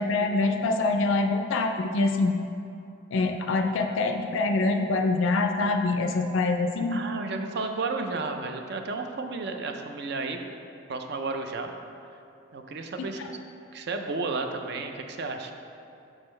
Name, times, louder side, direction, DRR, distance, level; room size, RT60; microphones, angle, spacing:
voice 1, 0.0-2.4 3.1-7.0 13.0-13.3, left 3 dB, 65° left, 6 dB, 0.3 m, -25 dB
voice 2, 6.9-10.4 10.9-11.7 12.5-13.2 13.7-15.5, right 3 dB, 50° right, 5 dB, 0.5 m, -32 dB
6.4 x 6.1 x 3.2 m, 2.7 s
head